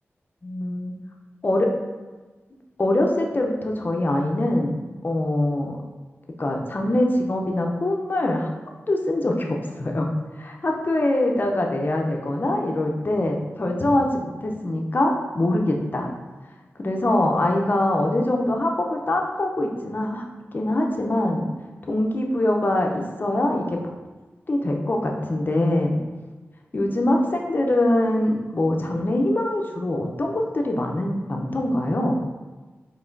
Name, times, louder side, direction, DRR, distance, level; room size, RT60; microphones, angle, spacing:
voice 1, 0.4-0.9 1.4-1.7 2.8-5.8 6.4-8.5 8.9-10.1 10.4-16.1 16.8-20.2 20.5-21.5 21.9-23.8 24.5-26.0 26.7-32.2, left 1 dB, 45° left, 1 dB, 0.6 m, -23 dB
4.7 x 3.2 x 2.6 m, 1.2 s
wide cardioid pair, 65°, 5 cm